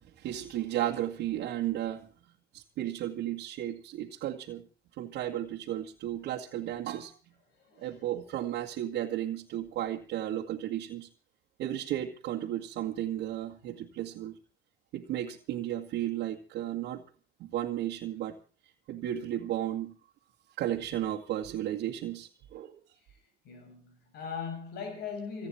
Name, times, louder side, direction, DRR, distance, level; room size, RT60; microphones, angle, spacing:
voice 1, 0.2-2.1 2.5-4.6 5.0-7.1 7.8-11.1 11.6-14.3 14.9-17.0 17.4-18.4 18.9-19.9 20.6-22.8, right 12 dB, 85° right, 2.1 m, -34 dB
voice 2, 7.6-8.1 23.4-25.5, left 6 dB, 75° left, 7.2 m, -39 dB
28.5 x 9.7 x 4.4 m
cardioid pair, 110°, 17 cm